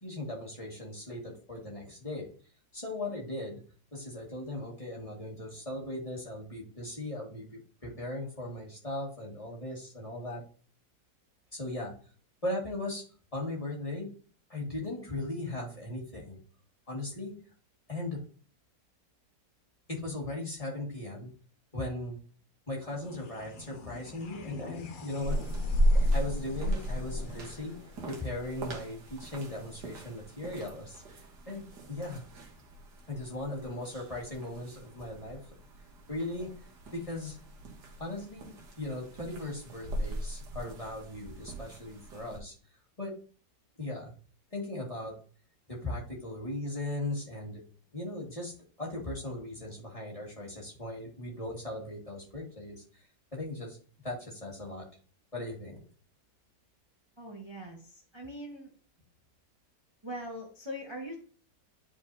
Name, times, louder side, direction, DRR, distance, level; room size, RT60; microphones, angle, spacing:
voice 1, 0.0-2.3 2.7-3.6 3.9-10.4 11.5-11.9 12.4-13.0 13.3-14.1 14.5-16.4 16.9-17.3 17.9-18.2 19.9-21.3 21.7-22.2 22.7-25.4 25.7-31.0 31.5-32.2 33.1-35.4 36.1-36.5 36.9-37.4 38.0-42.5 43.0-43.1 43.8-44.1 44.5-45.1 45.7-47.6 47.9-48.5 48.8-53.0 53.3-53.8 54.0-54.9 55.3-55.8, left 2 dB, 20° left, -3 dB, 1.9 m, -38 dB
sound 1, 22.8-29.6, left 4 dB, 60° left, 0.5 m, -47 dB
sound 2, 25.2-42.4, equal, 70° right, 1.9 m, -35 dB
voice 2, 57.2-58.7 60.0-61.1, equal, 20° right, -1 dB, 1.1 m, -41 dB
10.5 x 4.5 x 2.7 m, 0.41 s
omnidirectional pair, 1.8 m